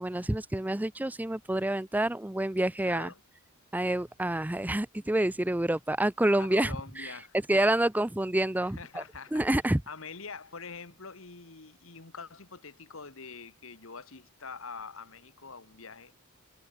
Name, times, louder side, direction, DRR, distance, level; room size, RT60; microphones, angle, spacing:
voice 1, 0.0-3.1 3.7-7.1 7.5-9.0 9.3-9.8, right 1 dB, 10° right, 0.5 m, -28 dB
voice 2, 2.8-3.2 6.4-7.7 8.6-9.5 9.9-16.1, left 4 dB, 65° left, 1.8 m, -45 dB
head